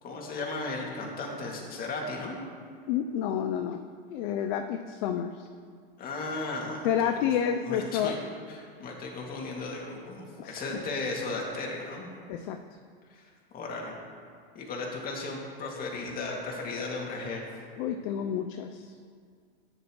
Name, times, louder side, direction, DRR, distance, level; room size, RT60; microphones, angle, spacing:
voice 1, 0.0-2.4 6.0-7.3 7.6-8.2 8.5-12.1 13.1-14.0 14.5-17.4, left 3 dB, 30° left, -1 dB, 2.4 m, -36 dB
voice 2, 2.9-3.8 4.1-5.5 6.8-8.2 10.4-10.8 12.3-12.6 17.8-18.9, left 9 dB, 55° left, 6 dB, 0.6 m, -29 dB
13.5 x 10.0 x 3.1 m, 2.1 s
hypercardioid pair, 120°, 30 cm